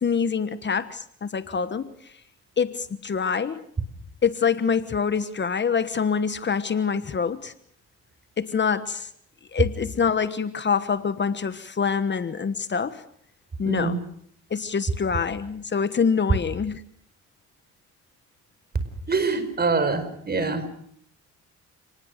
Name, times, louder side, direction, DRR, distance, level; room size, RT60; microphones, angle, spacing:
voice 1, 0.0-1.9 2.6-3.6 4.2-7.5 8.4-9.1 9.5-13.0 13.6-14.0 14.5-16.8, left 6 dB, 35° left, 13 dB, 1.3 m, -25 dB
voice 2, 13.6-14.0 19.1-20.6, right 4 dB, 30° right, 11 dB, 4.9 m, -25 dB
29.5 x 19.5 x 6.6 m, 0.65 s
cardioid pair, 90°, 30 cm